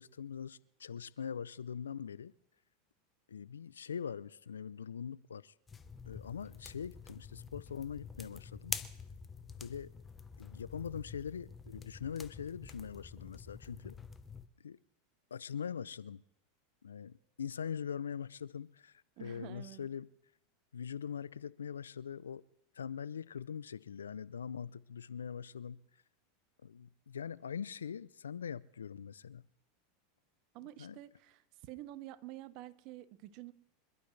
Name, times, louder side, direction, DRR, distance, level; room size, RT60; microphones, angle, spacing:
voice 1, 0.0-2.3 3.3-5.5 6.1-8.8 9.6-9.9 10.4-14.0 14.6-14.8 15.3-16.2 16.8-20.1 20.7-22.4 22.8-25.8 26.6-29.4 30.8-31.0, left 7 dB, 90° left, 0.4 m, -42 dB
sound 1, 5.7-14.5, left 5 dB, 20° left, 1.0 m, -47 dB
voice 2, 19.2-19.9 30.5-33.5, right 15 dB, 55° right, 1.0 m, -49 dB
26.0 x 11.5 x 3.3 m
hypercardioid pair, 95°, 0 cm